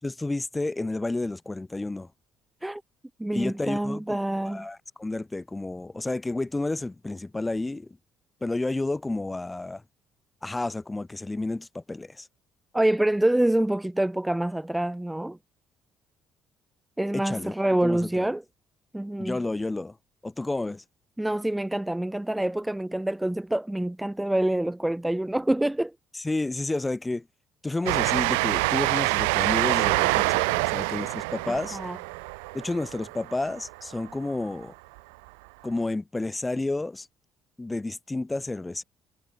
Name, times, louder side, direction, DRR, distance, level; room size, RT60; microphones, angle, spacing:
voice 1, 0.0-2.1 3.3-4.2 4.4-7.9 8.4-9.8 10.4-12.3 17.1-17.5 17.8-18.3 19.2-19.9 20.2-20.8 26.1-27.2 27.6-31.8 32.5-34.7 35.6-37.1 37.6-38.8, left 2 dB, 20° left, 6.2 m, -31 dB
voice 2, 3.2-4.7 12.7-15.4 17.0-18.4 18.9-19.4 21.2-25.9 31.5-32.0, right 1 dB, 10° right, 1.2 m, -26 dB
Train, 27.9-34.0, right 30 dB, 80° right, 0.3 m, -26 dB
hypercardioid pair, 55°, 0 cm